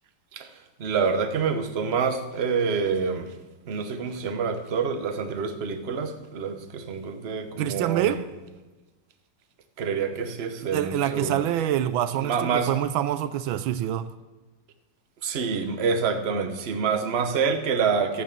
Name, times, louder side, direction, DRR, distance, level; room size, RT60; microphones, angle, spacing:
voice 1, 0.3-3.4 3.7-8.2 9.8-11.4 12.2-12.7 15.2-18.2, right 5 dB, 50° right, 0.8 m, -27 dB
voice 2, 7.6-8.2 10.7-14.1, right 11 dB, 75° right, 1.3 m, -26 dB
13.5 x 9.0 x 6.7 m
omnidirectional pair, 2.3 m